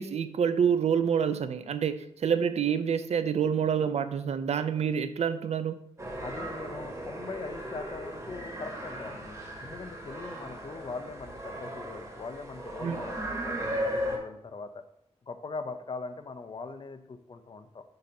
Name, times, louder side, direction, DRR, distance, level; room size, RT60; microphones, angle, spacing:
voice 1, 0.0-5.8 12.8-13.0, right 7 dB, 65° right, 11 dB, 0.5 m, -27 dB
sound 1, 6.0-14.2, equal, 25° right, 1.5 m, -36 dB
voice 2, 6.2-9.4 9.6-14.8 15.3-17.8, left 4 dB, 40° left, 9 dB, 0.6 m, -41 dB
7.8 x 2.8 x 5.3 m, 0.75 s
wide cardioid pair, 115°, 12 cm